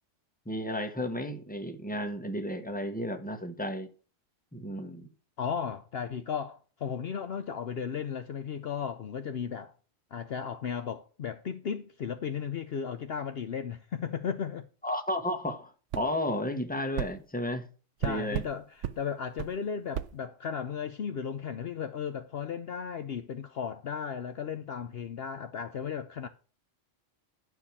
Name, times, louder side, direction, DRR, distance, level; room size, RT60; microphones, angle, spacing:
voice 1, 0.4-3.9 4.5-5.1 14.8-17.7 18.0-18.4, left 1 dB, 5° left, 1.3 m, -33 dB
voice 2, 5.4-9.7 10.1-14.6 18.0-26.3, left 7 dB, 60° left, 0.8 m, -35 dB
sound 1, 15.9-16.1 17.0-17.1 18.0-18.5 18.8-19.0 19.4-19.5 19.9-20.1, right 10 dB, 75° right, 1.0 m, -33 dB
11.5 x 4.8 x 7.1 m
omnidirectional pair, 1.3 m